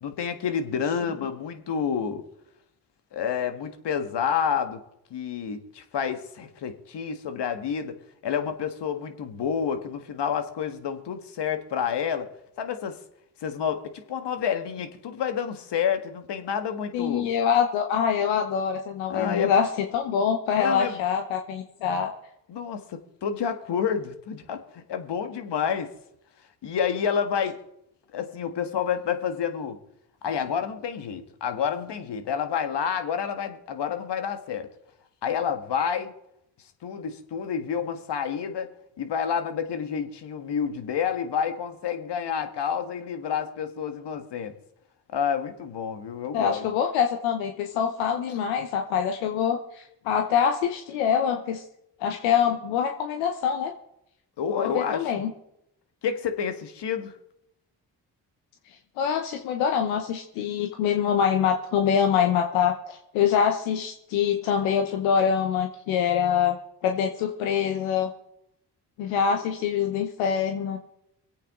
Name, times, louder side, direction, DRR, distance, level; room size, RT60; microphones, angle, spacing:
voice 1, 0.0-2.2 3.1-4.8 5.1-8.0 8.2-12.3 12.6-13.0 13.4-17.3 19.1-19.5 20.6-21.0 22.5-25.9 26.6-27.5 28.1-29.8 30.2-34.7 35.2-36.1 36.8-38.7 39.0-44.5 45.1-46.6 54.4-55.2 56.0-57.1, left 7 dB, 65° left, 8 dB, 1.7 m, -29 dB
voice 2, 16.9-19.7 19.9-22.1 46.3-51.6 52.0-53.7 54.5-55.3 59.0-66.6 66.8-68.1 69.0-70.8, left 7 dB, 90° left, 5 dB, 1.0 m, -25 dB
24.5 x 8.6 x 3.7 m, 0.80 s
supercardioid pair, 50°, 45 cm